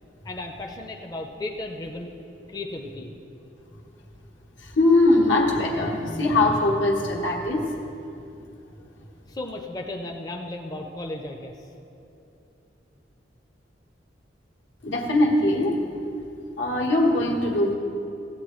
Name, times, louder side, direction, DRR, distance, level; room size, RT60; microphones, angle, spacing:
voice 1, 0.2-2.1 2.5-3.1 9.3-11.6, left 2 dB, 20° left, 2 dB, 0.5 m, -35 dB
voice 2, 4.6-7.7 14.8-15.8 16.6-17.7, left 2 dB, 75° left, -1 dB, 1.4 m, -21 dB
15.0 x 8.0 x 3.1 m, 2.8 s
head